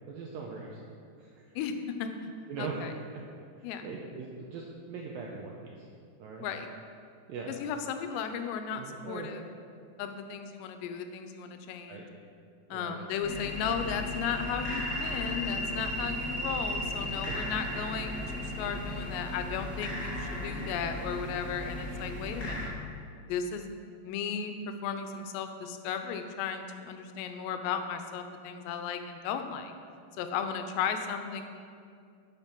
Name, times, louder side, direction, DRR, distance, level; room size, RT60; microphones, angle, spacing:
voice 1, 0.1-0.9 1.2-1.5 2.5-2.8 3.6-5.9 6.2-6.5 7.3-7.5 8.8-9.3 11.9-12.1 12.7-13.0 17.0-17.4 18.8-19.0, right 5 dB, 80° right, -1 dB, 2.0 m, -41 dB
voice 2, 1.6-2.1 2.6-2.9 3.6-3.9 6.4-6.7 7.5-9.4 10.0-12.1 12.7-22.7 23.3-23.7 24.0-29.7 30.2-31.4, left 7 dB, 80° left, 7 dB, 2.8 m, -35 dB
sound 1, 13.2-22.7, left 1 dB, 35° left, 2.2 m, -35 dB
8.9 x 7.2 x 5.9 m, 2.3 s
omnidirectional pair, 5.0 m